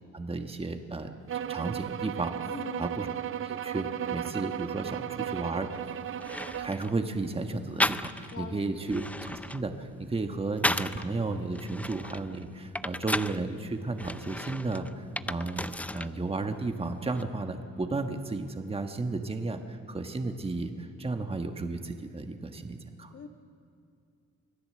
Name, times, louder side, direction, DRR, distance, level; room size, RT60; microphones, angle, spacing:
voice 1, 0.1-1.1 1.5-2.5 2.8-3.1 3.4-5.7 6.6-23.1, right 3 dB, 20° right, 6 dB, 1.4 m, -33 dB
sound 1, 1.3-6.8, right 10 dB, 45° right, 0.6 m, -35 dB
voice 2, 2.5-2.9 8.3-8.9 23.1-23.3, left 6 dB, 50° left, 7 dB, 1.7 m, -42 dB
sound 2, 5.7-5.8 6.2-7.0 7.8-8.4 8.8-11.1 11.5-13.4 14.0-16.1 16.4-17.2, left 1 dB, 5° left, 0.5 m, -34 dB
25.5 x 16.5 x 7.7 m, 2.5 s
cardioid pair, 90°, 30 cm